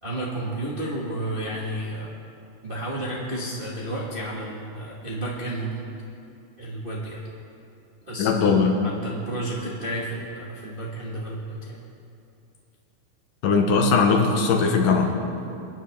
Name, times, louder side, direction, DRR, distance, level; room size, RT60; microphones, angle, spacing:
voice 1, 0.0-2.1 2.6-5.8 6.6-7.2 8.1-8.3 8.8-11.7, right 1 dB, 40° right, -4 dB, 0.8 m, -31 dB
voice 2, 8.2-8.7 13.4-15.1, left 4 dB, 85° left, 3 dB, 2.8 m, -19 dB
25.5 x 9.5 x 3.5 m, 2.6 s
omnidirectional pair, 3.7 m